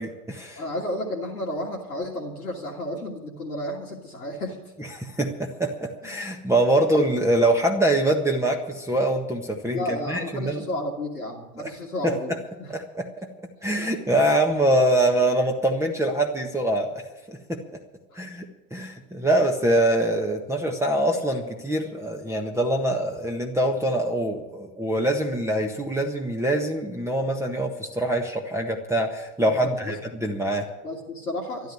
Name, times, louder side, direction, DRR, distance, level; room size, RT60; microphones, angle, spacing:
voice 1, 0.0-0.6 4.8-10.6 11.6-11.7 12.0-12.1 12.7-13.0 13.6-17.0 17.3-17.6 18.1-18.4 18.7-30.7, right 1 dB, 5° right, 2 dB, 1.5 m, -24 dB
voice 2, 0.6-4.6 9.7-12.3 12.6-12.7 13.8-14.2 18.1-18.2 29.4-29.9 30.8-31.7, left 1 dB, 85° left, -2 dB, 2.0 m, -32 dB
13.0 x 11.5 x 8.0 m, 1.1 s
figure-of-eight pair, 75°, 44 cm